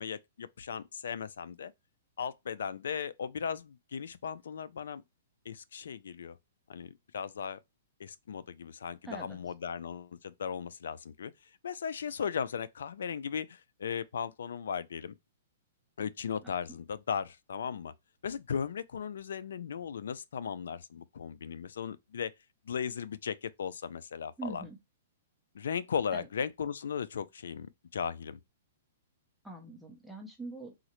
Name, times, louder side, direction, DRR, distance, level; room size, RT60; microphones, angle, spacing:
voice 1, 0.0-1.7 2.2-5.0 5.5-6.4 6.7-7.6 8.0-11.3 11.6-15.1 16.0-17.9 18.2-22.3 22.7-24.6 25.5-28.4, left 7 dB, 80° left, 0.3 m, -37 dB
voice 2, 9.1-9.4 16.4-16.5 24.4-24.8 26.1-26.3 29.4-30.7, right 2 dB, ahead, 0.5 m, -43 dB
3.7 x 2.1 x 2.9 m
hypercardioid pair, 160°, 0 cm